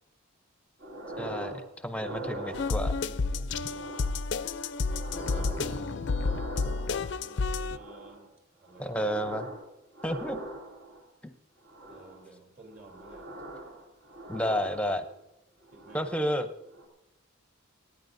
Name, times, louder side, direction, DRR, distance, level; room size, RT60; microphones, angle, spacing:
sound 1, 0.8-1.6 1.9-3.1 3.6-4.3 4.6-7.2 7.6-8.3 8.6-9.6 9.9-11.0 11.6-12.2 12.7-15.2 15.6-16.2 16.6-16.9, right 1 dB, 75° right, 2.8 m, -42 dB
voice 1, 1.2-2.9 5.6-6.2 8.8-9.5 10.0-10.4 14.3-15.0 15.9-16.5, equal, 5° left, 8 dB, 0.7 m, -31 dB
sound 2, 2.5-7.8, left 4 dB, 55° left, 0.4 m, -30 dB
voice 2, 2.6-3.8 5.1-6.1 7.0-8.3 8.6-9.1 11.9-13.4 15.7-16.3, right 2 dB, 45° right, 0 dB, 3.1 m, -53 dB
25.0 x 9.6 x 2.6 m, 0.92 s
head